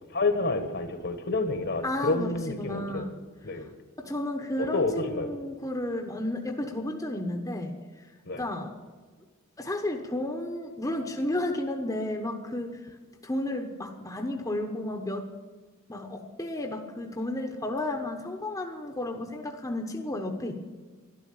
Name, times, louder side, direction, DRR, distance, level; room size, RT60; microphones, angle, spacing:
voice 1, 0.1-3.1 3.4-3.7 4.6-5.3 8.3-8.4, left 3 dB, 50° left, 8 dB, 1.4 m, -29 dB
voice 2, 1.8-3.1 3.5-3.7 4.0-7.7 8.3-8.7 9.6-12.8 13.2-15.3 15.9-20.5, left 1 dB, 15° left, 3 dB, 1.0 m, -32 dB
12.5 x 12.0 x 8.8 m, 1.4 s
head